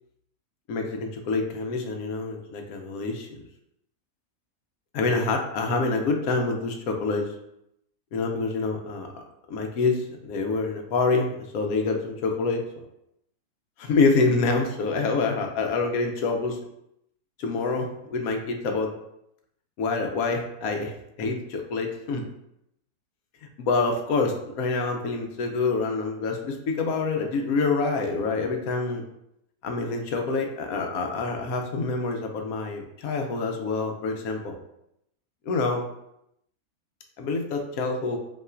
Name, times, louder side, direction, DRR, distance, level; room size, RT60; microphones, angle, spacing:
voice 1, 0.7-3.4 4.9-7.3 8.1-9.1 9.5-12.6 13.8-16.6 17.4-18.9 19.8-22.2 23.6-29.0 29.6-34.5 35.5-35.9 37.2-38.2, left 3 dB, 85° left, 3 dB, 1.1 m, -26 dB
5.4 x 2.9 x 2.5 m, 0.80 s
omnidirectional pair, 1.5 m